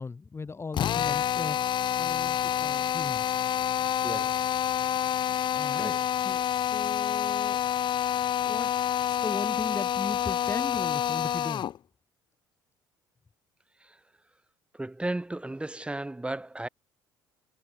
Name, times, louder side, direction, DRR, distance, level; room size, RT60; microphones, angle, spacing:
voice 1, 0.0-3.3 5.5-6.0 6.2-7.6 8.4-8.7 9.1-11.7, left 4 dB, 20° left, 1.6 m, -37 dB
Drill, 0.7-11.8, left 10 dB, 45° left, 1.2 m, -28 dB
voice 2, 4.0-4.5 5.7-6.0 13.8-14.0 14.7-16.7, right 2 dB, 10° right, 2.7 m, -35 dB
figure-of-eight pair, 55°, 11 cm